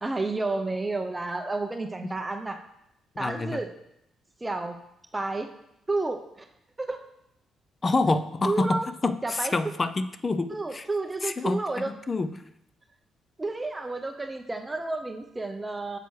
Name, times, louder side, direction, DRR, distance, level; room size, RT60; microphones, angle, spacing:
voice 1, 0.0-2.6 3.2-3.7 4.4-4.8 5.1-5.5 5.9-6.4 6.8-7.0 8.4-8.9 9.2-9.5 10.5-11.9 13.4-16.0, right 2 dB, 20° right, 5 dB, 0.6 m, -30 dB
voice 2, 3.2-3.6 7.8-10.9 11.2-12.4, left 3 dB, 30° left, 11 dB, 0.4 m, -27 dB
9.1 x 6.8 x 3.2 m, 0.81 s
cardioid pair, 90°, 0 cm